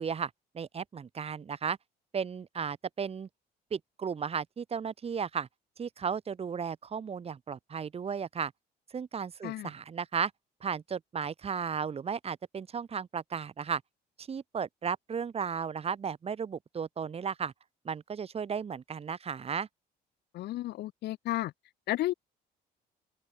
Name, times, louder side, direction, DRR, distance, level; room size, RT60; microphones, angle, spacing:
voice 1, 0.0-1.8 2.1-3.3 3.7-5.5 5.8-8.5 8.9-10.3 10.6-13.8 14.2-17.5 17.8-19.7, right 6 dB, 35° right, 3.0 m, -35 dB
voice 2, 20.3-21.5 21.9-22.1, left 15 dB, 75° left, 3.0 m, -32 dB
open air
cardioid pair, 110°, 17 cm